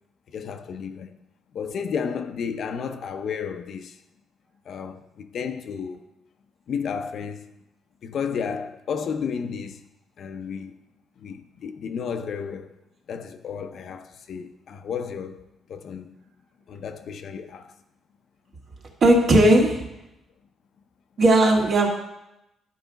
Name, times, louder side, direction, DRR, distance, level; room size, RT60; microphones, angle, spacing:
voice 1, 0.3-1.2 1.5-4.0 4.7-6.0 6.7-7.6 8.0-9.9 10.2-10.7 11.2-12.8 13.1-15.4 15.7-16.2 16.7-17.7, left 6 dB, 55° left, 0.6 m, -32 dB
voice 2, 19.0-19.9 21.2-21.9, right 1 dB, 50° right, 1.7 m, -17 dB
11.5 x 4.8 x 4.0 m
cardioid pair, 125°, 0 cm